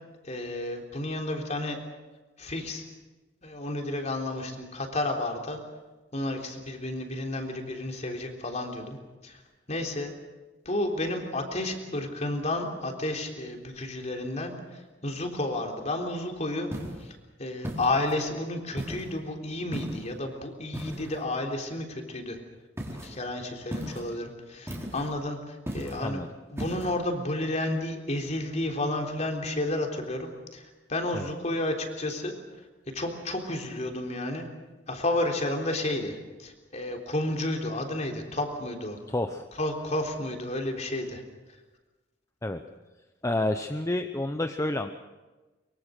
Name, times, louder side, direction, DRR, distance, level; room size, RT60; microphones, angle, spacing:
voice 1, 0.2-1.8 2.4-2.8 3.4-5.6 6.1-9.0 9.2-9.4 9.7-10.1 10.7-16.7 17.0-22.4 23.0-32.3 32.9-34.5 34.9-39.0 39.6-41.2, left 1 dB, 40° left, 3 dB, 3.6 m, -31 dB
sound 1, 16.7-17.1 17.6-18.2 18.8-19.2 19.7-20.1 20.7-21.2 22.8-23.1 23.7-24.1 24.7-25.1 25.7-26.1 26.6-26.9, equal, 15° right, 4.0 m, -36 dB
voice 2, 39.1-39.4 42.4-42.6 43.2-44.9, left 1 dB, 15° left, 7 dB, 0.9 m, -29 dB
24.0 x 23.5 x 6.6 m, 1.2 s
head